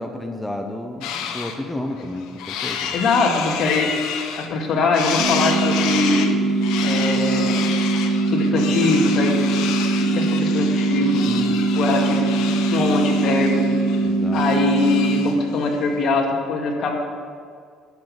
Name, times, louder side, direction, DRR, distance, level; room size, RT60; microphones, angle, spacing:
voice 1, 0.0-3.0 11.3-11.6 14.0-14.5, left 1 dB, 5° left, 4 dB, 0.9 m, -31 dB
sound 1, 1.0-1.6 2.0-4.6 4.9-15.4, left 8 dB, 80° left, 1.2 m, -30 dB
voice 2, 2.9-3.9 4.4-6.3 6.8-7.7 8.3-9.6 10.0-11.2 11.8-12.3 12.7-13.7 14.3-17.0, left 3 dB, 55° left, 1 dB, 2.3 m, -22 dB
sound 2, 5.2-15.2, right 3 dB, 55° right, 3.4 m, -21 dB
11.5 x 7.5 x 8.1 m, 2.1 s
cardioid pair, 115°, 0 cm